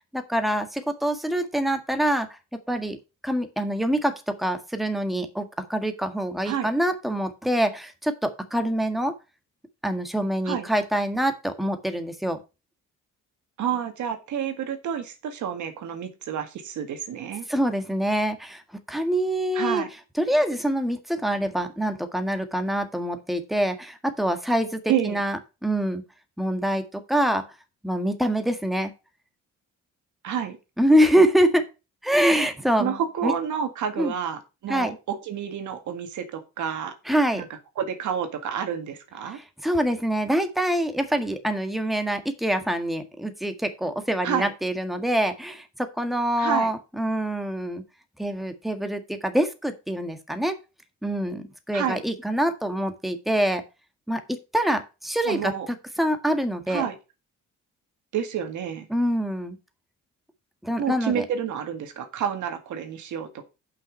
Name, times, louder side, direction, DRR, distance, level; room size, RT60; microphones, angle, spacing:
voice 1, 0.1-2.4 2.7-3.0 3.2-9.1 9.8-12.4 17.5-18.6 18.9-19.8 20.2-26.0 26.4-27.5 27.8-28.9 30.8-31.7 32.0-33.3 34.0-34.1 34.7-35.0 37.0-37.4 39.3-47.8 48.2-50.6 51.0-53.6 54.1-55.5 56.0-56.9 58.9-59.6 60.6-61.2, equal, ahead, 7 dB, 1.6 m, -25 dB
voice 2, 13.6-17.5 19.5-19.9 24.9-25.2 30.2-30.6 32.8-37.0 37.4-37.5 37.8-39.4 44.2-44.5 46.4-46.7 51.7-52.0 55.2-55.7 56.7-57.0 58.1-58.9 60.8-63.5, right 8 dB, 75° right, 7 dB, 1.9 m, -29 dB
7.6 x 5.9 x 6.3 m, 0.28 s
cardioid pair, 90°, 30 cm